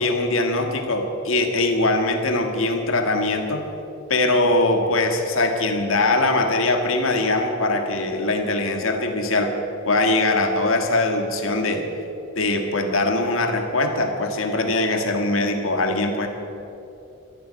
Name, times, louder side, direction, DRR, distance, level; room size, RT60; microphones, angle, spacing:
voice 1, 0.0-3.6 4.1-9.6 9.9-11.9 12.4-16.3, left 2 dB, 75° left, 4 dB, 1.7 m, -22 dB
13.0 x 12.0 x 8.6 m, 2.8 s
head